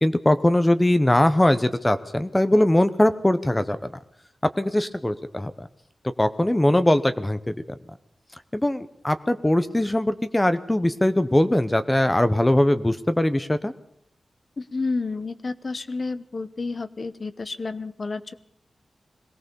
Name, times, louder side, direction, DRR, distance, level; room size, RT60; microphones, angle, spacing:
voice 1, 0.0-3.9 4.6-5.7 6.2-7.5 8.5-13.7, left 1 dB, 15° left, 11 dB, 0.9 m, -21 dB
voice 2, 14.6-18.3, left 3 dB, 45° left, 15 dB, 1.1 m, -30 dB
22.0 x 17.5 x 7.0 m, 0.69 s
wide cardioid pair, 90°, 0 cm